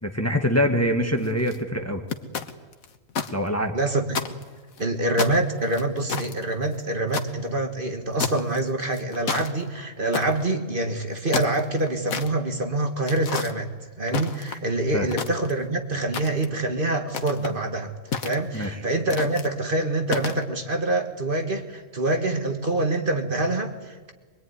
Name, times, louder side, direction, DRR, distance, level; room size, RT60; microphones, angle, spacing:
voice 1, 0.0-2.0 3.3-3.8 14.9-15.1 18.5-18.8, equal, 10° left, 5 dB, 1.5 m, -24 dB
sound 1, 1.2-1.6 2.1-3.3 3.6-3.7 4.1-4.8 5.2-7.3 8.2-8.6 8.9-9.5 10.1-10.4 11.1-12.3 13.1-13.5 14.1-14.7 15.1-15.7 16.1-16.6 17.1-17.5 18.1-18.7 19.1-19.5 20.1-20.4, left 5 dB, 90° left, 1.7 m, -30 dB
voice 2, 3.7-4.3 4.8-13.7 14.0-17.9 18.2-24.1, right 2 dB, 40° right, 5 dB, 1.9 m, -26 dB
23.5 x 22.0 x 9.6 m, 1.4 s
omnidirectional pair, 1.4 m